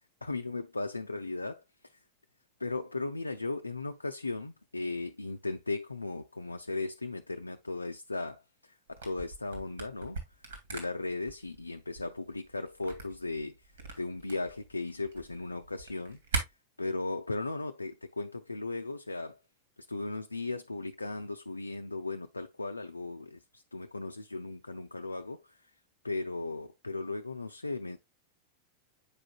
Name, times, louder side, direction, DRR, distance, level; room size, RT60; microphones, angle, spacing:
voice 1, 0.2-2.0 2.6-10.2 10.7-13.7 14.0-16.5 16.8-19.4 19.9-25.7 26.0-28.0, left 3 dB, 80° left, 0.4 m, -37 dB
Camera, 8.9-16.4, right 3 dB, 65° right, 2.4 m, -40 dB
8.3 x 5.0 x 2.3 m
figure-of-eight pair, 90°, 0 cm